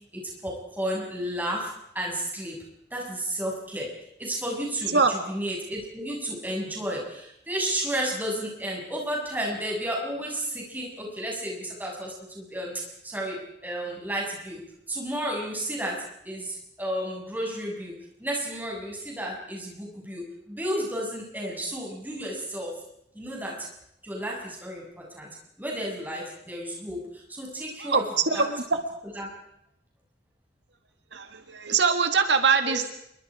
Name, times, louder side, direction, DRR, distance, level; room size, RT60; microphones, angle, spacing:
voice 1, 0.1-2.6 2.9-22.8 23.1-23.7 24.0-28.5 29.1-29.3 32.6-32.8, right 1 dB, 10° right, -2 dB, 6.6 m, -32 dB
voice 2, 27.8-28.6 31.1-32.9, right 5 dB, 85° right, 7 dB, 1.8 m, -23 dB
27.0 x 23.5 x 4.9 m, 0.77 s
head